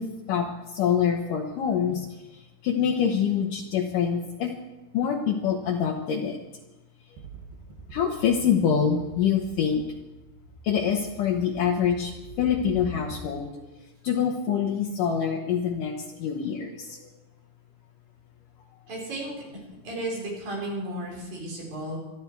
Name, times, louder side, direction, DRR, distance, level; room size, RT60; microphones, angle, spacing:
voice 1, 0.0-4.5 4.9-6.4 7.9-9.8 10.6-13.5 14.0-17.1, left 7 dB, 70° left, 1 dB, 2.5 m, -26 dB
sound 1, 7.2-13.5, right 2 dB, 90° right, 3.8 m, -45 dB
voice 2, 18.9-19.3 19.8-22.0, right 1 dB, 70° right, -3 dB, 6.3 m, -33 dB
26.0 x 11.0 x 4.7 m, 1.0 s
omnidirectional pair, 4.2 m